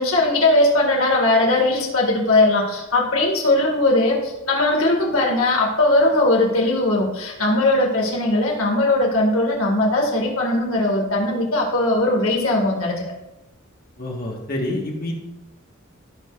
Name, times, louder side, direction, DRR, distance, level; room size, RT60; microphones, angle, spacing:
voice 1, 0.0-13.1, left 2 dB, 80° left, -1 dB, 1.9 m, -19 dB
voice 2, 14.0-15.1, left 1 dB, 45° left, -1 dB, 1.5 m, -27 dB
15.5 x 6.4 x 2.4 m, 0.98 s
head